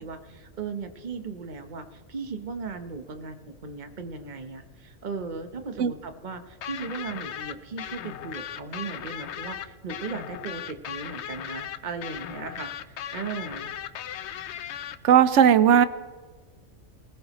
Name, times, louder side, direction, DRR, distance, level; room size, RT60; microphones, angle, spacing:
voice 1, 0.0-13.7, right 4 dB, 40° right, 7 dB, 1.0 m, -37 dB
sound 1, 6.6-15.0, left 10 dB, 70° left, 0.8 m, -37 dB
voice 2, 15.0-15.9, right 9 dB, 75° right, 14 dB, 1.0 m, -17 dB
20.0 x 18.5 x 3.0 m, 1.4 s
omnidirectional pair, 1.3 m